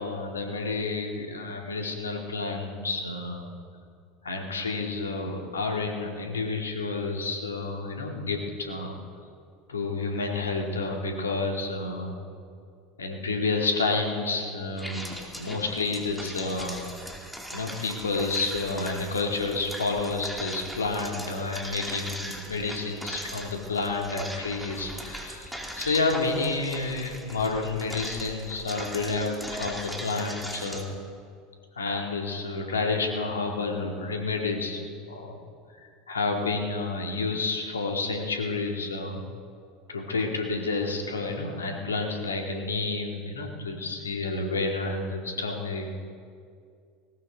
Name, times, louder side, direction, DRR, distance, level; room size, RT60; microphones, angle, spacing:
voice 1, 0.0-3.4 4.2-8.9 9.7-12.2 13.0-15.1 15.4-16.8 17.5-30.9 31.8-34.8 35.1-35.4 36.1-39.2 39.9-45.9, left 3 dB, 85° left, 2 dB, 2.1 m, -30 dB
sound 1, 14.8-30.8, equal, ahead, 2.6 m, -39 dB
19.5 x 18.0 x 4.0 m, 2.2 s
hypercardioid pair, 80°, 0 cm